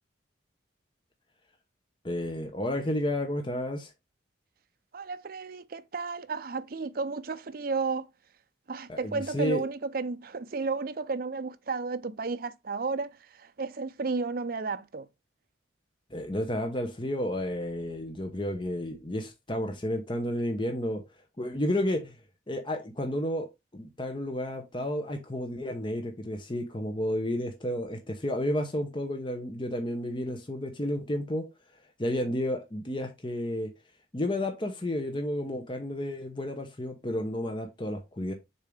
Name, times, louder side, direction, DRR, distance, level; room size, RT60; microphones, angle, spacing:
voice 1, 2.0-3.9 8.9-9.6 16.1-21.0 21.4-22.1 22.5-23.5 23.7-31.4 32.0-33.7 34.1-38.3, left 1 dB, 25° left, 0.8 m, -31 dB
voice 2, 4.9-8.1 8.7-15.1, right 4 dB, 50° right, 0.5 m, -33 dB
6.9 x 2.8 x 4.9 m
head